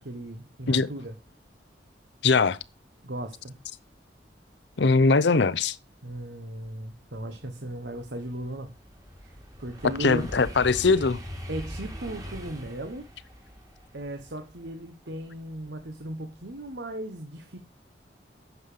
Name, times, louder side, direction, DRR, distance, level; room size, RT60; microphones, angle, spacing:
voice 1, 0.0-1.2 3.0-3.6 6.0-8.7 9.2-10.2 11.5-13.1 13.9-17.6, right 1 dB, 80° right, 1.3 m, -37 dB
voice 2, 2.2-2.6 4.8-5.8 10.0-11.2, left 4 dB, 85° left, 0.7 m, -21 dB
sound 1, 6.3-6.4 6.8-15.9 16.3-16.7, equal, 20° right, 2.1 m, -42 dB
9.6 x 7.1 x 5.1 m
head